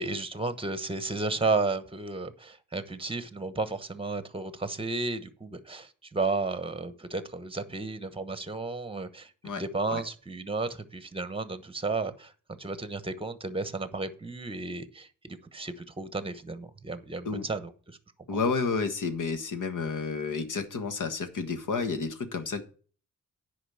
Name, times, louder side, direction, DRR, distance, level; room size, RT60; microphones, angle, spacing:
voice 1, 0.0-18.0 18.3-18.4, right 3 dB, 15° right, 12 dB, 1.1 m, -33 dB
voice 2, 18.3-22.6, left 4 dB, 75° left, 8 dB, 1.6 m, -30 dB
9.9 x 5.0 x 7.0 m, 0.40 s
wide cardioid pair, 110°, 32 cm